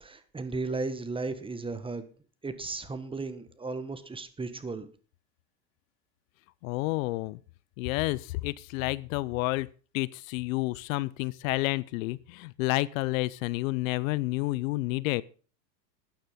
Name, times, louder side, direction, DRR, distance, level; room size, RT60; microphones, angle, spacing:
voice 1, 0.0-2.0 2.4-4.9, right 3 dB, 10° right, 1.4 m, -35 dB
voice 2, 6.6-7.4 7.8-9.7 9.9-15.2, left 21 dB, 55° left, 0.6 m, -30 dB
13.0 x 9.5 x 5.3 m
hypercardioid pair, 110°, 50 cm